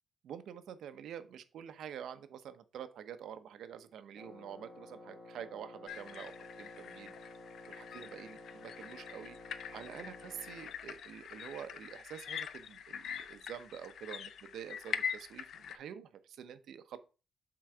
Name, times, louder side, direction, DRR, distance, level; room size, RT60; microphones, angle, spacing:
voice 1, 0.2-7.3 7.7-9.4 9.7-17.0, right 9 dB, 90° right, 11 dB, 0.7 m, -47 dB
Wind instrument woodwind instrument, 4.1-10.8, left 2 dB, ahead, 1.4 m, -52 dB
sound 1, 5.9-15.8, left 8 dB, 70° left, 0.5 m, -44 dB
7.7 x 3.8 x 4.8 m, 0.33 s
wide cardioid pair, 170°, 0 cm